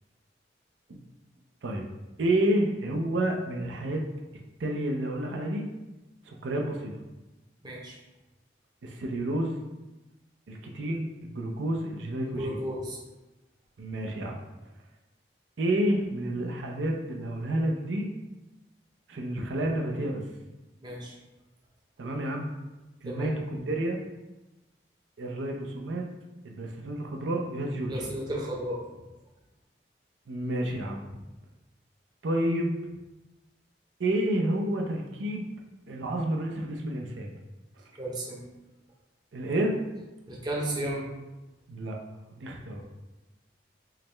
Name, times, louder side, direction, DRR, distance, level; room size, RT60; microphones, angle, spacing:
voice 1, 2.2-4.0 4.6-5.7 6.3-6.9 8.8-9.6 10.5-12.6 13.8-14.4 15.6-18.1 19.1-20.2 22.0-22.5 23.0-24.0 25.2-26.0 26.4-28.1 30.3-31.0 32.2-32.7 34.0-35.5 35.9-37.3 39.3-39.7 41.7-42.0 42.3-42.8, right 1 dB, 85° right, 1 dB, 0.5 m, -29 dB
voice 2, 7.6-8.0 12.3-13.0 20.8-21.1 23.1-23.3 27.8-28.8 37.9-38.4 40.3-41.0 42.5-42.6, right 1 dB, 25° right, -3 dB, 0.6 m, -34 dB
4.6 x 2.2 x 3.2 m, 1.0 s
head